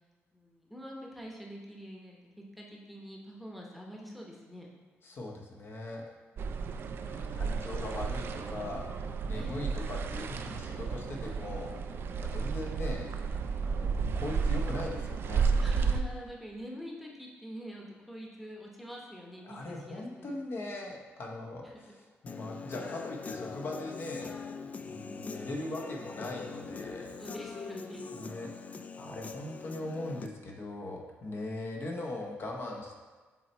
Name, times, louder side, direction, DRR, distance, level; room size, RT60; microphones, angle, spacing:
voice 1, 0.3-4.7 9.3-9.5 15.6-20.4 21.6-22.0 27.2-28.0, equal, ahead, -2 dB, 0.9 m, -46 dB
voice 2, 5.0-6.0 7.0-8.8 9.2-11.7 12.2-13.2 13.6-15.5 19.4-27.2 28.1-32.9, left 2 dB, 50° left, 0 dB, 0.9 m, -40 dB
sound 1, 6.4-16.0, right 5 dB, 55° right, 0.4 m, -32 dB
Human voice / Guitar, 22.3-30.3, left 5 dB, 30° left, 0.3 m, -43 dB
7.1 x 3.1 x 4.3 m, 1.4 s
cardioid pair, 125°, 5 cm